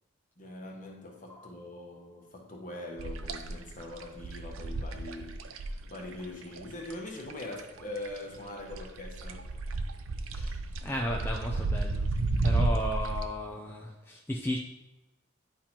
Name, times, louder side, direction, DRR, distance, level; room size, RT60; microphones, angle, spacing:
voice 1, 0.4-9.5, left 2 dB, 40° left, 1.1 m, -42 dB
sound 1, 3.0-7.8 8.1-13.2, right 3 dB, 85° right, 0.6 m, -32 dB
voice 2, 10.3-12.1 12.4-14.6, equal, 10° left, 0.4 m, -34 dB
10.0 x 4.4 x 2.9 m
head